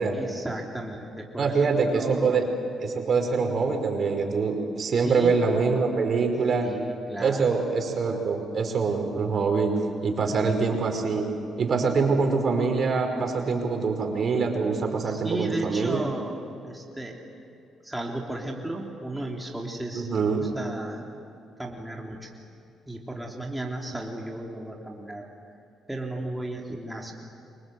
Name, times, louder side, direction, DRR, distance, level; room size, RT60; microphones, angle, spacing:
voice 1, 0.1-2.4 5.0-5.5 6.6-7.6 15.0-17.2 17.8-21.0 21.6-22.3 22.9-25.3 25.9-27.1, right 1 dB, 5° right, -1 dB, 3.2 m, -35 dB
voice 2, 1.4-2.5 2.8-6.7 7.2-9.7 10.0-11.3 11.6-16.0 19.9-20.5, right 4 dB, 50° right, 4 dB, 5.2 m, -24 dB
30.0 x 25.0 x 7.9 m, 2.6 s
cardioid pair, 90°, 0 cm